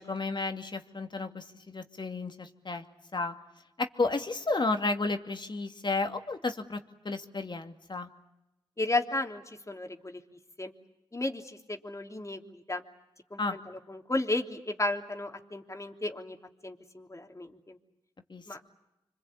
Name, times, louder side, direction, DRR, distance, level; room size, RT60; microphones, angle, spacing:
voice 1, 0.0-2.8 3.1-3.3 3.8-6.8 7.0-8.1 13.4-13.6 18.3-18.4, left 3 dB, 45° left, 6 dB, 2.5 m, -32 dB
voice 2, 8.8-10.2 10.6-10.7 11.1-12.8 13.3-16.4 16.6-17.8 18.5-18.7, left 2 dB, 30° left, 5 dB, 3.2 m, -34 dB
27.0 x 25.0 x 8.8 m, 0.91 s
cardioid pair, 45°, 11 cm